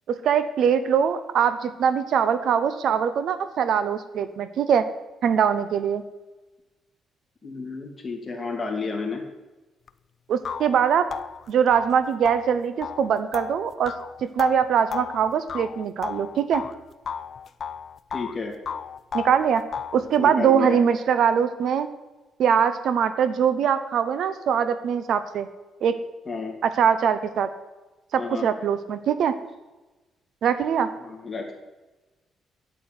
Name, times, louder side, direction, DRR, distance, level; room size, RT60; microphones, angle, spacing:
voice 1, 0.1-4.9 5.2-6.0 10.3-11.1 11.5-13.9 14.2-16.6 19.1-19.6 19.9-21.9 22.4-25.5 25.8-26.0 26.6-27.5 28.1-29.3 30.4-30.9, right 7 dB, 65° right, 12 dB, 0.9 m, -22 dB
voice 2, 7.4-9.2 18.1-18.5 20.2-20.8 26.3-26.5 28.1-28.5 31.0-31.5, left 4 dB, 20° left, 1 dB, 2.9 m, -31 dB
sound 1, 9.9-10.0 10.4-16.8 17.1-18.4 18.7-20.1, left 7 dB, 45° left, 0.5 m, -34 dB
9.1 x 8.6 x 9.5 m, 1.1 s
cardioid pair, 125°, 0 cm